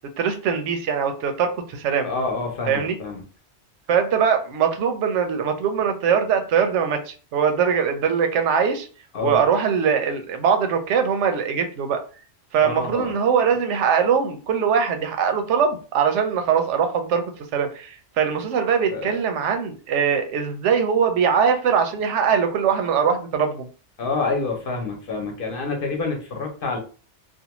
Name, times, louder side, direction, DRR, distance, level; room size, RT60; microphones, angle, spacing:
voice 1, 0.2-2.1 2.7-2.9 3.9-8.9 9.2-12.0 12.5-17.2 17.5-23.7, right 7 dB, 85° right, 6 dB, 0.9 m, -21 dB
voice 2, 2.0-3.2 9.1-9.4 12.6-13.1 18.9-19.2 24.0-26.8, left 4 dB, 55° left, 2 dB, 0.8 m, -27 dB
2.5 x 2.2 x 2.9 m, 0.37 s
omnidirectional pair, 1.2 m